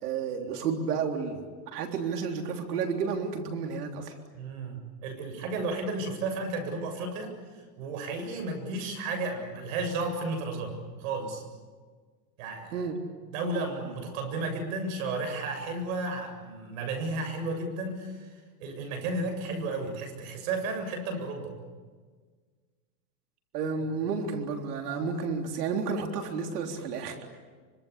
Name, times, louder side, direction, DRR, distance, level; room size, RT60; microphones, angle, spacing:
voice 1, 0.0-4.1 12.7-13.0 23.5-27.3, right 5 dB, 85° right, 3 dB, 3.9 m, -31 dB
voice 2, 4.3-7.3 7.8-11.4 12.4-12.9 13.3-18.3 18.6-21.5, right 2 dB, 60° right, 5 dB, 7.7 m, -33 dB
26.0 x 25.5 x 8.5 m, 1.5 s
supercardioid pair, 155°, 45 cm